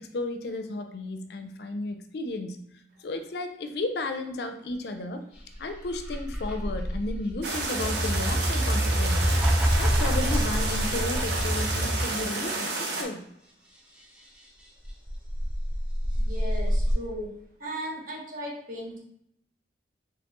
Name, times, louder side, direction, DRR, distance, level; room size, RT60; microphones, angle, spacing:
voice 1, 0.0-2.6 3.0-13.2, left 2 dB, 60° left, 7 dB, 0.4 m, -34 dB
sound 1, 5.5-12.2 14.8-16.9, equal, 5° right, 0.6 m, -26 dB
sound 2, 7.4-13.0, right 3 dB, 70° right, 0.8 m, -31 dB
voice 2, 16.1-17.3 17.6-19.0, equal, 50° right, -2 dB, 1.1 m, -36 dB
4.2 x 3.0 x 3.0 m, 0.73 s
head